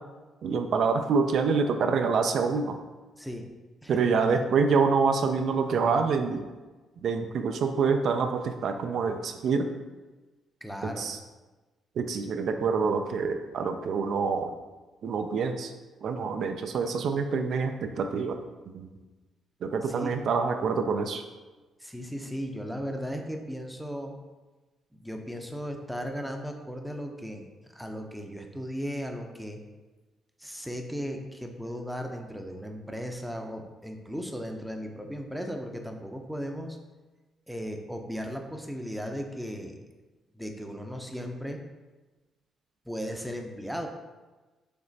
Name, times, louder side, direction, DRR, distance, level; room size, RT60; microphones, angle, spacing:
voice 1, 0.4-2.8 3.9-6.4 7.0-9.7 11.0-11.2 12.0-14.5 15.0-15.7 16.0-18.4 18.7-18.9 19.6-21.2, right 5 dB, 65° right, 6 dB, 0.3 m, -26 dB
voice 2, 3.2-3.5 3.8-4.4 10.6-11.1 19.8-20.2 21.8-24.2 24.9-29.6 30.4-36.8 37.5-39.8 40.3-41.6 42.9-43.9, equal, ahead, 3 dB, 0.5 m, -36 dB
5.0 x 3.0 x 2.7 m, 1.2 s
cardioid pair, 90°, 0 cm